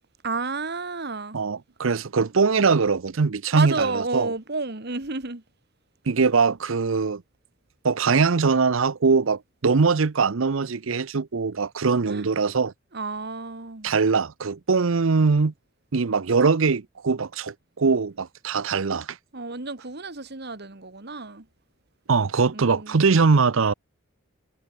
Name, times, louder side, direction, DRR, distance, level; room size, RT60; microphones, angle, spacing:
voice 1, 0.2-1.4 3.5-5.4 12.1-12.2 12.9-13.9 19.3-21.5 22.5-23.0, right 3 dB, 50° right, 1.8 m, -31 dB
voice 2, 1.3-4.3 6.1-7.2 7.8-12.7 13.8-15.5 15.9-19.2 22.1-23.7, right 4 dB, 70° right, 0.7 m, -22 dB
head